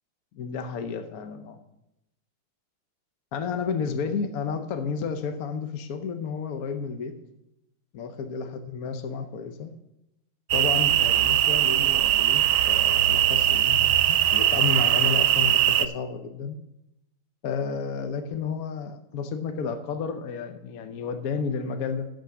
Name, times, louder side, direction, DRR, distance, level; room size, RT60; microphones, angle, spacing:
voice 1, 0.3-1.6 3.3-7.2 7.9-9.7 10.5-16.6 17.4-22.1, left 5 dB, 60° left, 8 dB, 0.9 m, -31 dB
sound 1, 10.5-15.9, right 12 dB, 75° right, 1.3 m, -21 dB
9.1 x 7.2 x 7.0 m, 0.88 s
omnidirectional pair, 2.3 m